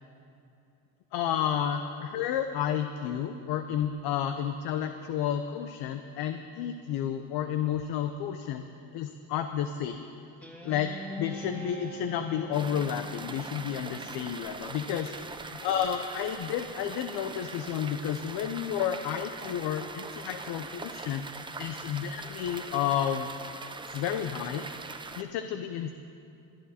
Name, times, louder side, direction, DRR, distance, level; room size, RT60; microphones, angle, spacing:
voice 1, 1.1-8.6 8.9-10.0 10.6-23.3 23.9-24.7 25.2-25.9, left 9 dB, 65° left, 8 dB, 0.8 m, -31 dB
Guitar, 10.4-15.1, left 1 dB, 5° left, 1.6 m, -44 dB
sound 1, 12.5-25.2, right 3 dB, 10° right, 0.5 m, -42 dB
21.5 x 10.5 x 4.3 m, 2.7 s
cardioid pair, 115°, 42 cm